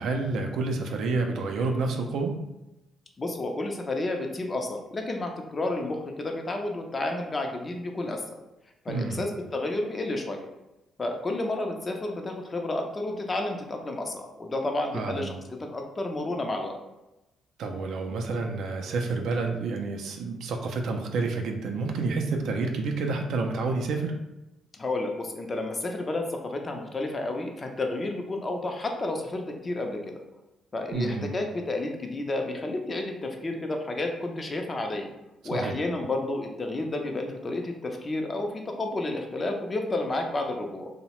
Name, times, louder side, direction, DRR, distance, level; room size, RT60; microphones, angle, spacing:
voice 1, 0.0-2.3 8.9-9.2 14.9-15.3 17.6-24.1 30.9-31.4 35.5-35.8, right 3 dB, 75° right, 3 dB, 0.3 m, -29 dB
voice 2, 3.2-8.4 8.8-10.5 11.0-15.3 15.7-16.8 24.8-30.2 30.7-35.1 35.4-40.9, left 2 dB, 30° left, 3 dB, 0.4 m, -31 dB
2.7 x 2.0 x 2.9 m, 0.95 s
cardioid pair, 90°, 0 cm